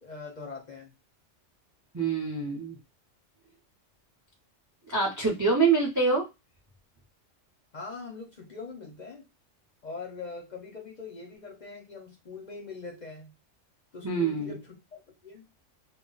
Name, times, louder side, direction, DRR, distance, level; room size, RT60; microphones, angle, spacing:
voice 1, 0.0-0.9 7.7-9.3 9.8-13.3 13.9-15.4, left 4 dB, 45° left, 0 dB, 0.6 m, -42 dB
voice 2, 1.9-2.8 4.9-6.3 14.0-14.6, right 4 dB, 25° right, 0 dB, 0.4 m, -25 dB
2.2 x 2.1 x 3.8 m, 0.23 s
omnidirectional pair, 1.3 m